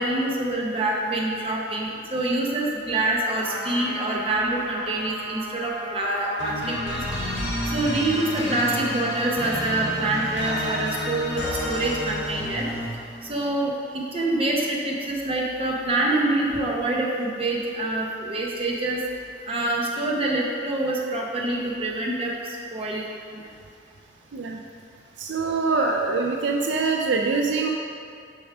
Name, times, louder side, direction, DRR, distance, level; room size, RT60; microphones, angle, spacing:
voice 1, 0.0-7.0 7.7-12.6 13.3-19.0 19.5-22.3 22.7-23.1 23.3-23.4, right 2 dB, 30° right, -2 dB, 0.9 m, -26 dB
Trumpet, 3.4-10.6, right 1 dB, ahead, 1.7 m, -37 dB
sound 1, 6.4-13.1, left 1 dB, 85° left, 1.8 m, -30 dB
voice 2, 25.2-27.7, right 4 dB, 65° right, 2 dB, 0.4 m, -24 dB
6.9 x 5.2 x 4.8 m, 2.4 s
head